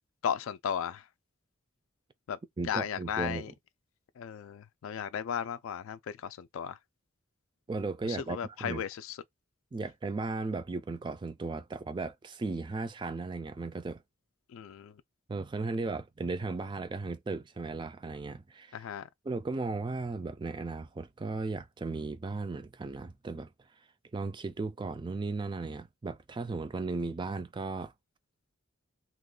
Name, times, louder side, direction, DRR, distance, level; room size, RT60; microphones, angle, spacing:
voice 1, 0.2-1.0 2.3-2.4 2.6-3.5 4.2-6.8 8.1-9.2 14.5-14.9 18.7-19.1, left 8 dB, 75° left, 0.3 m, -35 dB
voice 2, 2.6-3.5 7.7-8.8 9.7-14.0 15.3-18.8 19.2-23.5 24.1-27.9, right 3 dB, 20° right, 0.3 m, -36 dB
2.9 x 2.2 x 3.7 m
head